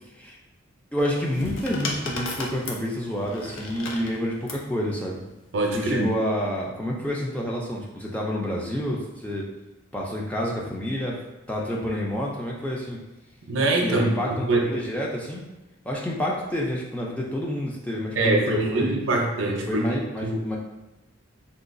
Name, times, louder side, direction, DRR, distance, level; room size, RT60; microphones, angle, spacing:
voice 1, 0.9-5.2 5.7-9.5 9.9-11.2 11.5-13.0 13.8-15.4 15.9-18.9 19.7-20.6, equal, 5° left, -3 dB, 0.3 m, -28 dB
sound 1, 1.0-4.7 5.7-6.1, left 3 dB, 70° left, 0.5 m, -34 dB
voice 2, 5.5-6.1 13.5-14.1 14.5-14.7 18.1-20.4, right 2 dB, 65° right, 1 dB, 0.5 m, -24 dB
3.8 x 2.2 x 2.5 m, 1.0 s
head